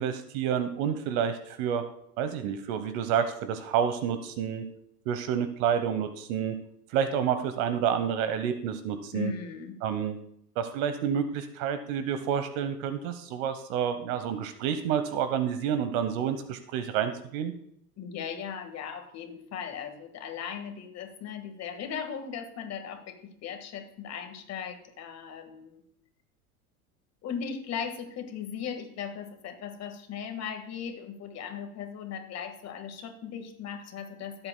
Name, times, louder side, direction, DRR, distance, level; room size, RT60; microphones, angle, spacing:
voice 1, 0.0-1.8 2.2-4.6 5.1-6.6 6.9-9.3 9.8-10.2 10.6-17.5, right 8 dB, 55° right, 9 dB, 1.1 m, -29 dB
voice 2, 9.1-9.8 18.0-25.8 27.2-34.5, left 7 dB, 35° left, 7 dB, 1.6 m, -38 dB
17.5 x 7.9 x 2.2 m, 0.71 s
hypercardioid pair, 115°, 46 cm